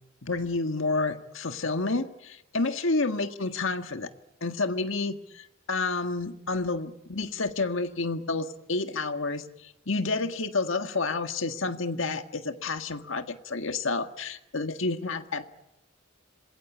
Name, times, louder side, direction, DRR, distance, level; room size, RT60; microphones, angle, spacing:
voice 1, 0.2-4.1 4.4-15.4, left 3 dB, 70° left, 7 dB, 1.7 m, -30 dB
27.0 x 21.0 x 8.5 m, 0.83 s
head